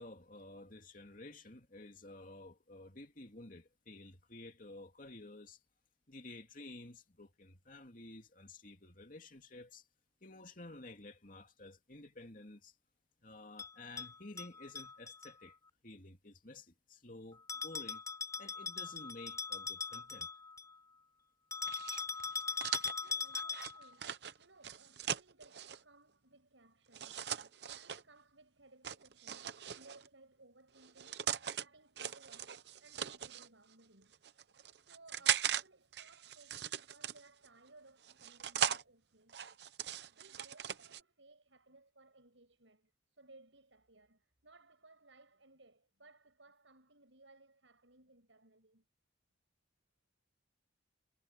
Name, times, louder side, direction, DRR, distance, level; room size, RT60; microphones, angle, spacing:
voice 1, 0.0-5.6 6.1-9.8 10.2-12.7 13.2-15.6 15.8-18.0 18.4-20.3, left 2 dB, 45° left, 2.9 m, -52 dB
Bell, 13.6-15.3 17.5-20.7 21.5-23.9, left 5 dB, 15° left, 4.7 m, -41 dB
sound 1, 21.7-25.8 26.9-28.0 28.8-30.1 30.8-31.6 32.0-33.5 34.1-35.6 35.9-37.5 38.0-38.8 39.3-41.0, right 9 dB, 60° right, 0.8 m, -39 dB
voice 2, 23.0-27.3 27.8-31.2 31.5-34.2 34.8-39.4 40.1-48.8, right 2 dB, 85° right, 7.9 m, -63 dB
head